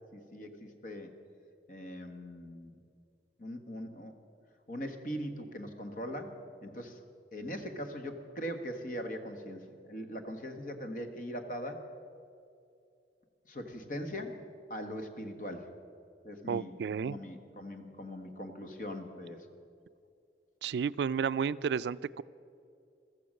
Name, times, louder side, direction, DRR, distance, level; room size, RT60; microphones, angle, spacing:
voice 1, 0.1-1.1 1.7-2.7 3.4-4.1 4.7-7.0 7.3-11.8 13.5-14.4 14.7-15.7 16.2-19.5, equal, 50° left, 6 dB, 1.4 m, -41 dB
voice 2, 16.5-17.2 20.6-22.2, right 6 dB, 70° right, 17 dB, 0.3 m, -32 dB
15.0 x 13.5 x 6.4 m, 2.5 s
head